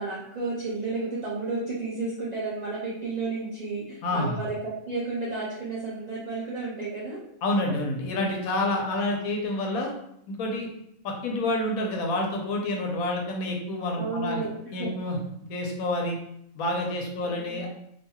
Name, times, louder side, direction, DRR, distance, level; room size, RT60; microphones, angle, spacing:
voice 1, 0.0-7.2 14.0-14.9 17.2-17.6, right 3 dB, 65° right, -7 dB, 0.4 m, -32 dB
voice 2, 4.0-4.4 7.4-9.9 10.3-10.7 11.0-14.5 14.7-15.2 15.5-16.2 16.5-17.7, left 1 dB, 85° left, 1 dB, 1.1 m, -28 dB
2.9 x 2.6 x 2.2 m, 0.76 s
omnidirectional pair, 1.4 m